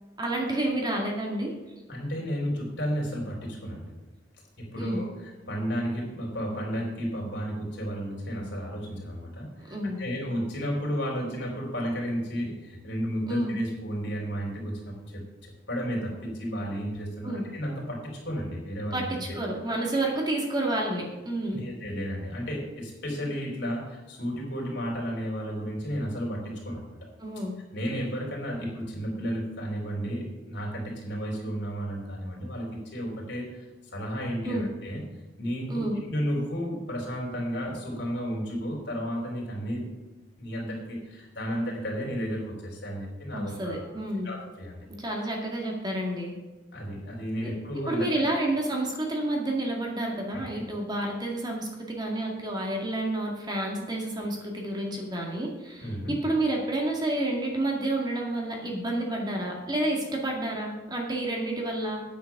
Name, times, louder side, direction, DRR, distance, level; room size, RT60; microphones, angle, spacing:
voice 1, 0.2-1.5 4.8-5.0 9.7-10.0 13.3-13.6 17.2-17.5 18.9-21.6 27.2-27.5 34.4-34.7 35.7-36.0 43.3-44.3 45.0-46.3 47.4-47.5 47.9-62.0, right 1 dB, 20° right, -1 dB, 2.0 m, -30 dB
voice 2, 1.9-3.9 4.6-19.2 21.5-27.0 27.7-33.7 33.9-35.0 35.4-39.9 40.4-43.8 44.2-44.9 46.7-48.1 50.3-50.6 55.8-56.1, equal, 60° left, -1 dB, 3.8 m, -33 dB
9.2 x 8.2 x 5.9 m, 1.2 s
head